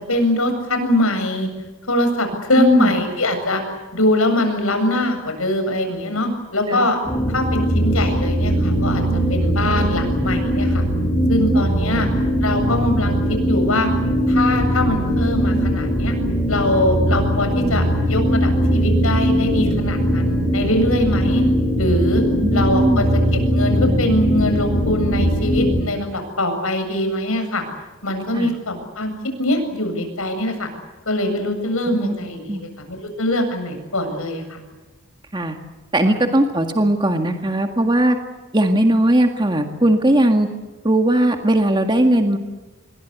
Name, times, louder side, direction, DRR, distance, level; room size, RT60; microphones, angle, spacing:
voice 1, 0.1-1.5 1.9-3.6 3.9-7.0 7.3-9.0 9.3-10.8 11.3-12.1 12.4-13.9 14.3-16.1 16.5-21.4 21.8-22.2 22.5-23.1 23.5-27.6 28.0-29.1 29.4-30.7 31.1-34.6, left 1 dB, 90° left, 7 dB, 7.9 m, -22 dB
voice 2, 2.6-2.9 6.7-6.9 11.5-11.6 22.4-23.0 28.3-28.5 32.0-32.1 32.5-32.6 35.3-35.6 35.9-38.2 38.5-40.5 40.8-42.4, right 1 dB, 20° right, 5 dB, 1.9 m, -18 dB
sound 1, 7.1-25.8, equal, 15° left, 4.3 m, -20 dB
27.5 x 23.0 x 8.3 m, 1.2 s
head